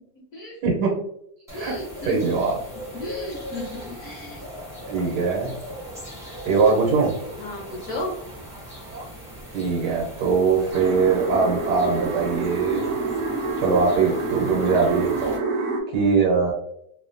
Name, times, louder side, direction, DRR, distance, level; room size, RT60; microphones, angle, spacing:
voice 1, 1.5-2.1 3.0-4.4 7.4-8.1, left 1 dB, 65° left, -4 dB, 1.0 m, -34 dB
sound 1, 1.5-15.4, equal, 5° right, 0.5 m, -39 dB
voice 2, 2.1-2.5 4.9-5.6 6.4-7.1 8.9-9.1 9.5-12.9 13.6-15.4 15.9-16.5, right 4 dB, 90° right, -2 dB, 1.3 m, -21 dB
sound 2, 10.7-15.8, right 4 dB, 75° right, 0.7 m, -27 dB
3.0 x 2.0 x 2.5 m, 0.73 s
omnidirectional pair, 1.8 m